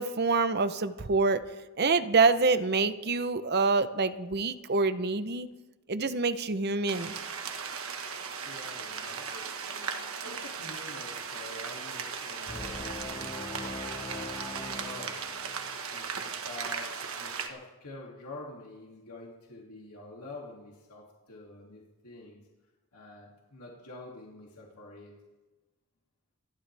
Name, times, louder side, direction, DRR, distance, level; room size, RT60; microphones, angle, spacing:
voice 1, 0.0-1.4 1.8-5.5 5.9-7.1, right 4 dB, 45° right, 11 dB, 0.8 m, -26 dB
sound 1, 6.9-17.5, right 6 dB, 65° right, 1.3 m, -37 dB
voice 2, 8.4-15.2 15.9-16.9 17.1-22.4 22.9-25.1, left 2 dB, 85° left, -3 dB, 2.7 m, -47 dB
sound 2, 12.5-15.8, left 2 dB, 20° left, 1.2 m, -41 dB
27.0 x 11.5 x 3.4 m, 1.2 s
head